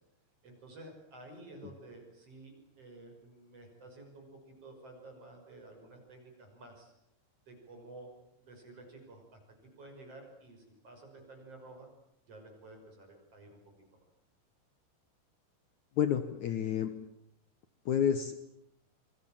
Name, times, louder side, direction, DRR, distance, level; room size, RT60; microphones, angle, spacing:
voice 1, 0.4-6.9 7.5-8.1 8.4-9.4 9.8-11.9 12.3-13.6, right 2 dB, 30° right, 3 dB, 6.5 m, -52 dB
voice 2, 16.0-16.9 17.9-18.4, left 9 dB, 80° left, 10 dB, 1.7 m, -29 dB
27.5 x 23.5 x 7.4 m, 0.78 s
omnidirectional pair, 5.2 m